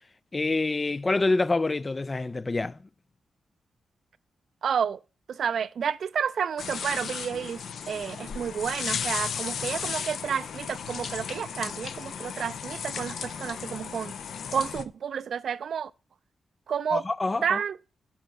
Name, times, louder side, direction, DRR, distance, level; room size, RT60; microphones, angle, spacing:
voice 1, 0.3-2.8 16.9-17.6, left 3 dB, 35° left, 0.4 m, -26 dB
voice 2, 4.6-5.0 5.3-14.1 14.5-15.9 16.7-17.0 17.4-17.8, right 7 dB, 70° right, 0.4 m, -30 dB
sound 1, 6.6-14.8, left 7 dB, 75° left, 0.6 m, -35 dB
7.2 x 5.5 x 7.4 m
supercardioid pair, 40°, 0 cm